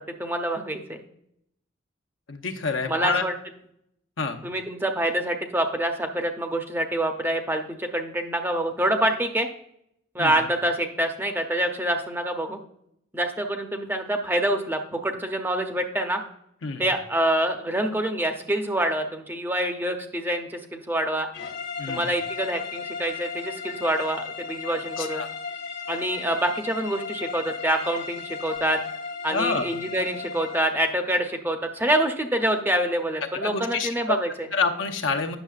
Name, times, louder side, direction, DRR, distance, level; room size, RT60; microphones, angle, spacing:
voice 1, 0.2-1.0 2.9-3.3 4.4-9.5 10.1-12.6 13.1-16.2 16.8-21.3 21.9-25.2 25.9-28.8 29.2-34.5, right 1 dB, 10° right, 5 dB, 0.6 m, -26 dB
voice 2, 2.3-3.2 4.2-4.4 10.2-10.4 16.6-16.8 21.8-22.0 24.7-25.3 29.3-29.7 33.2-34.2 34.5-35.4, left 4 dB, 75° left, 4 dB, 0.8 m, -28 dB
sound 1, 21.3-30.8, left 5 dB, 60° left, 1.2 m, -35 dB
8.9 x 6.5 x 2.4 m, 0.74 s
head